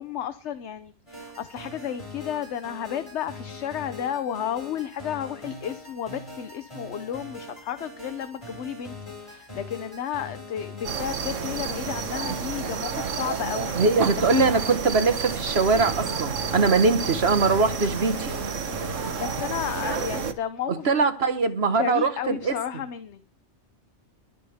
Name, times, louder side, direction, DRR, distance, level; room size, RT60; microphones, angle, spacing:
voice 1, 0.0-13.7 14.2-14.3 18.7-20.9 21.8-23.2, left 9 dB, 70° left, 1.1 m, -32 dB
sound 1, 1.1-19.5, left 2 dB, 25° left, 6.2 m, -42 dB
sound 2, 10.8-20.3, right 6 dB, 90° right, 1.5 m, -30 dB
voice 2, 13.8-18.4 20.7-22.5, right 4 dB, 60° right, 1.7 m, -22 dB
22.5 x 8.5 x 3.6 m
omnidirectional pair, 1.2 m